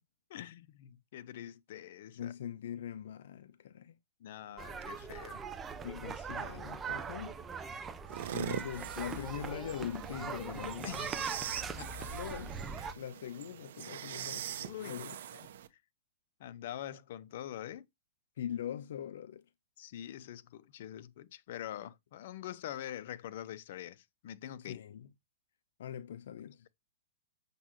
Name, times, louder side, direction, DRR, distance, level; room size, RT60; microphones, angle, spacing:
voice 1, 0.3-2.3 4.2-5.4 10.8-11.2 11.8-12.1 14.6-15.0 15.3-15.8 16.4-17.8 19.8-24.8, left 11 dB, 55° left, 1.1 m, -45 dB
voice 2, 2.2-3.9 5.8-7.5 8.3-10.9 12.1-12.6 13.0-14.6 14.9-15.2 18.4-19.4 24.6-25.1 25.8-26.7, left 10 dB, 70° left, 0.8 m, -42 dB
sound 1, 4.6-12.9, right 5 dB, 15° right, 1.0 m, -41 dB
sound 2, 8.1-15.7, right 10 dB, 60° right, 1.4 m, -43 dB
8.1 x 7.5 x 3.1 m
hypercardioid pair, 160°, 0 cm